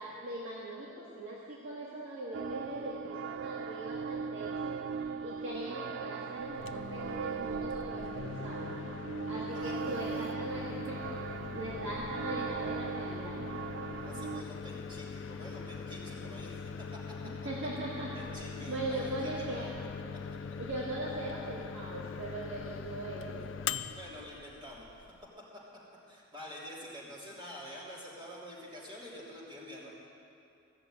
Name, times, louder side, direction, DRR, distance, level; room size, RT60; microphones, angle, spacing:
voice 1, 0.0-8.8 9.3-11.2 11.5-13.4 16.1-16.3 17.2-18.3 18.7-19.7 20.6-23.5, right 1 dB, 75° right, -6 dB, 1.6 m, -40 dB
sound 1, 2.3-14.4, right 6 dB, 55° right, 0.3 m, -39 dB
Microwave oven, 6.4-25.3, left 5 dB, 65° left, 0.4 m, -42 dB
voice 2, 9.5-10.3 14.0-17.0 18.1-19.7 23.9-25.0 26.1-29.9, equal, 25° right, -7 dB, 3.3 m, -47 dB
14.5 x 6.9 x 9.0 m, 2.6 s
head